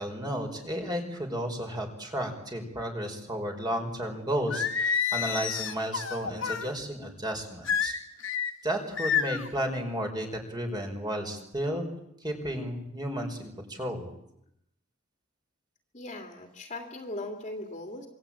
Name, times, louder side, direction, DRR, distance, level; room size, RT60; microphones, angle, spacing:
voice 1, 0.0-7.9 8.6-11.9 12.2-14.1, equal, 20° right, 3 dB, 4.9 m, -33 dB
Singing, 4.5-6.7 7.7-8.5 9.0-9.5, left 7 dB, 70° left, 2.3 m, -29 dB
voice 2, 15.9-18.1, left 2 dB, 35° left, 4 dB, 2.7 m, -39 dB
26.5 x 23.0 x 8.9 m, 0.79 s
head